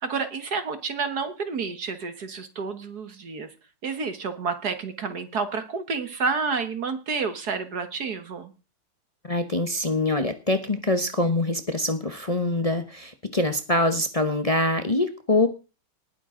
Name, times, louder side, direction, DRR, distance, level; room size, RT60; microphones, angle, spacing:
voice 1, 0.0-3.5 3.8-8.5, right 4 dB, 50° right, 9 dB, 1.8 m, -30 dB
voice 2, 9.2-15.5, left 2 dB, 40° left, 8 dB, 0.5 m, -24 dB
19.0 x 9.5 x 3.8 m, 0.33 s
omnidirectional pair, 2.4 m